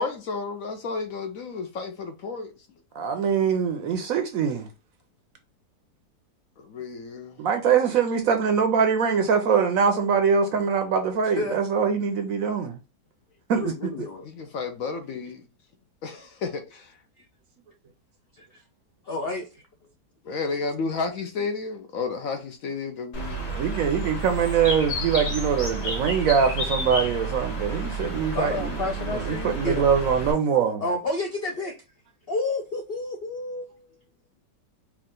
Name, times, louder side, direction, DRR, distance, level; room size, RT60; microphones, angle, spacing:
voice 1, 0.0-2.5 6.6-7.5 14.2-15.4 16.0-17.0 20.2-23.5, left 4 dB, 65° left, 0.9 m, -32 dB
voice 2, 2.9-4.7 7.4-12.8 13.5-13.7 23.4-28.8 29.1-30.8, right 6 dB, 70° right, 0.9 m, -23 dB
voice 3, 13.5-14.3 17.2-17.3 18.3-18.6 19.0-19.6 24.6-24.7 28.3-29.9 30.8-31.8 32.3-34.0, left 2 dB, 85° left, 0.5 m, -30 dB
Bird, 23.1-30.3, right 2 dB, 40° left, 1.9 m, -31 dB
4.7 x 2.4 x 3.7 m
omnidirectional pair, 1.8 m